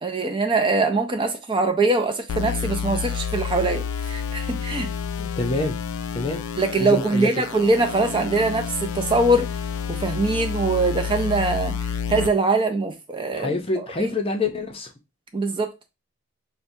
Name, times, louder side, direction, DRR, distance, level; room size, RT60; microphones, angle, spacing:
voice 1, 0.0-4.9 6.6-9.5 9.9-13.6 14.0-14.1 15.3-15.7, right 3 dB, 20° right, 0.4 m, -22 dB
sound 1, 2.3-12.3, left 7 dB, 70° left, 0.3 m, -29 dB
voice 2, 5.2-5.8 6.1-6.4 6.8-7.3 13.3-14.9, left 3 dB, 25° left, 0.6 m, -26 dB
5.8 x 2.2 x 2.6 m
head